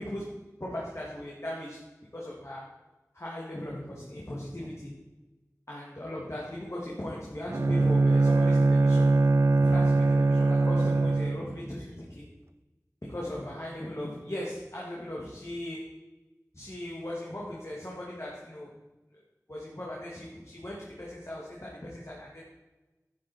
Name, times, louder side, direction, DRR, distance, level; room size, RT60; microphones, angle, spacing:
voice 1, 0.0-1.8 2.1-2.7 3.1-4.9 5.7-9.2 9.6-12.3 13.0-16.0 16.5-18.7 19.5-22.4, left 1 dB, 50° left, -4 dB, 2.2 m, -38 dB
Bowed string instrument, 7.5-11.6, right 3 dB, 50° right, 0.4 m, -22 dB
10.5 x 8.3 x 4.4 m, 1.1 s
wide cardioid pair, 40°, 6 cm